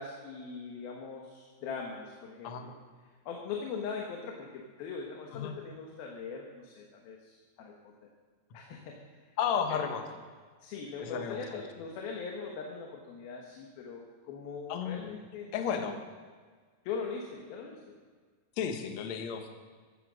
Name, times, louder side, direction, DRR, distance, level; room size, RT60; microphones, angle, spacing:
voice 1, 0.0-2.7 3.3-7.9 8.5-9.0 10.6-15.9 16.8-18.0, left 5 dB, 85° left, 0 dB, 3.3 m, -41 dB
voice 2, 9.4-10.0 11.0-11.6 14.7-15.1 15.5-16.0 18.6-19.5, left 7 dB, 60° left, 5 dB, 2.2 m, -33 dB
15.0 x 11.5 x 6.4 m, 1.6 s
omnidirectional pair, 4.1 m